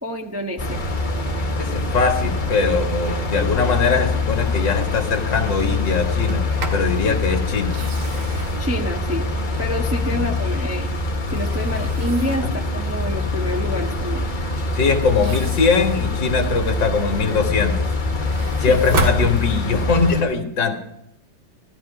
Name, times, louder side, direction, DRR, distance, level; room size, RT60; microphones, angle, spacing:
voice 1, 0.0-0.8 8.6-9.3 9.6-10.9 11.3-14.2 18.7-18.8, equal, 10° right, 1 dB, 0.7 m, -27 dB
sound 1, 0.6-20.2, left 3 dB, 30° left, 1.0 m, -24 dB
voice 2, 1.6-7.8 10.1-10.3 12.4-12.5 14.7-17.9 18.6-20.8, left 4 dB, 60° left, 4 dB, 2.2 m, -21 dB
Sliding door, 6.1-6.9 7.6-9.9 10.5-12.6 15.0-16.9 17.4-19.9, right 3 dB, 75° right, 2.8 m, -32 dB
16.0 x 13.0 x 4.9 m, 0.77 s
omnidirectional pair, 2.3 m